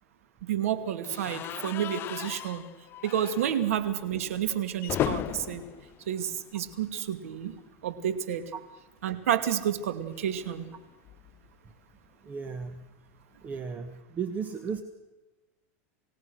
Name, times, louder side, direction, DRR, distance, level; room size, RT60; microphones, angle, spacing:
voice 1, 0.4-2.6 3.0-5.6 6.1-7.6 7.8-8.4 9.0-10.6, right 10 dB, 85° right, 11 dB, 2.6 m, -30 dB
sound 1, 1.0-7.1 7.4-7.6 7.8-7.9 9.2-11.5, left 12 dB, 30° left, 0.7 m, -38 dB
voice 2, 12.2-12.8 13.4-14.8, right 6 dB, 25° right, 8 dB, 1.5 m, -35 dB
29.0 x 17.5 x 6.4 m, 1.1 s
supercardioid pair, 145°, 7 cm